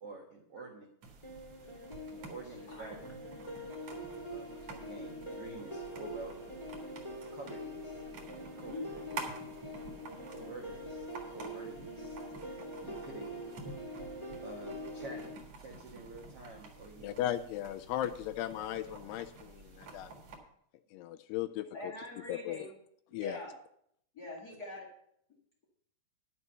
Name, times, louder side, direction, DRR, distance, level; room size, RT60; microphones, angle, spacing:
voice 1, 0.0-0.9 2.1-3.0 4.3-6.3 7.3-8.0 8.6-9.0 10.3-12.2 12.8-13.5 14.4-15.2 15.6-17.3, right 2 dB, 80° right, 0 dB, 1.3 m, -48 dB
sound 1, 1.0-20.4, right 3 dB, 50° right, 2.0 m, -50 dB
sound 2, 1.2-15.3, equal, 15° left, 1.4 m, -44 dB
voice 2, 8.7-9.3 21.7-22.7 23.1-23.5 24.1-24.9, left 2 dB, 50° left, -2 dB, 1.1 m, -44 dB
voice 3, 17.0-20.1 20.9-21.9 22.3-22.7 23.1-23.4, left 12 dB, 80° left, 11 dB, 2.4 m, -37 dB
11.0 x 7.4 x 5.4 m, 0.70 s
omnidirectional pair, 4.9 m